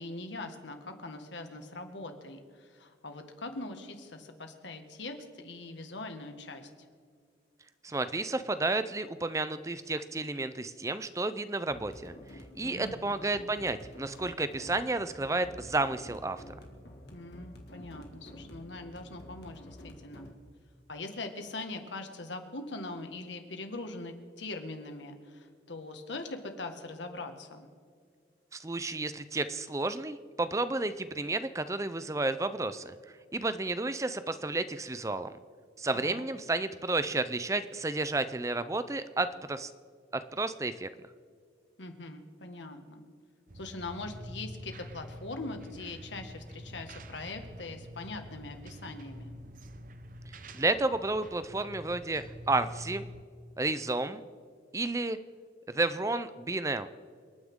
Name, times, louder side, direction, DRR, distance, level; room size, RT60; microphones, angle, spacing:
voice 1, 0.0-6.9 12.6-13.5 17.1-20.3 20.9-27.7 35.9-36.3 41.8-43.0 43.5-49.4, left 2 dB, 85° left, 6 dB, 1.8 m, -42 dB
voice 2, 7.8-12.1 12.5-16.4 28.5-32.9 33.3-35.3 35.8-39.7 40.1-40.9 50.5-53.1 53.6-54.2 54.7-55.2 55.7-56.9, right 2 dB, 15° right, 12 dB, 0.5 m, -31 dB
sound 1, 11.7-20.3, equal, 65° left, 2.2 m, -49 dB
sound 2, 43.5-53.2, equal, 45° right, 0.8 m, -46 dB
28.5 x 9.7 x 3.7 m, 2.1 s
head